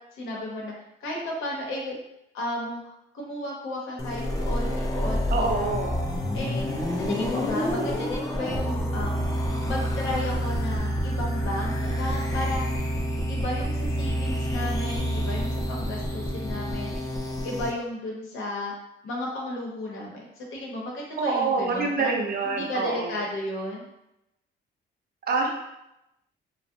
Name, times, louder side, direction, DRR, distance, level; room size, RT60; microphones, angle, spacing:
voice 1, 0.2-0.7 1.0-2.0 2.3-2.8 3.1-5.8 6.3-6.7 7.1-9.2 9.6-12.6 13.3-17.0 17.4-18.7 19.0-23.8, left 1 dB, 80° left, -2 dB, 0.8 m, -33 dB
sound 1, 4.0-17.7, equal, 20° left, 0.5 m, -28 dB
voice 2, 5.3-6.0 21.2-23.2 25.3-25.5, right 4 dB, 50° right, 0 dB, 0.6 m, -26 dB
2.4 x 2.0 x 2.7 m, 0.87 s
cardioid pair, 90°, 20 cm